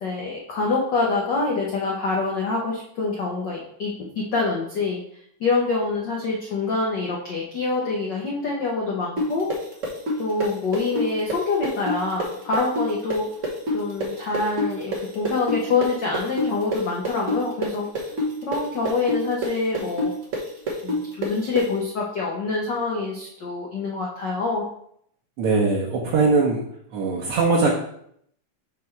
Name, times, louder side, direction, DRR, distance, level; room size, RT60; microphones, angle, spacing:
voice 1, 0.0-5.0 5.4-9.5 10.2-13.3 13.7-17.9 18.4-20.1 20.8-24.6, left 3 dB, 80° left, -2 dB, 0.9 m, -25 dB
sound 1, 9.2-16.8 17.0-21.6, equal, 80° right, 0.6 m, -26 dB
voice 2, 25.4-26.6 26.9-27.7, right 3 dB, 65° right, -2 dB, 1.5 m, -20 dB
5.9 x 3.2 x 5.8 m, 0.69 s
omnidirectional pair, 3.3 m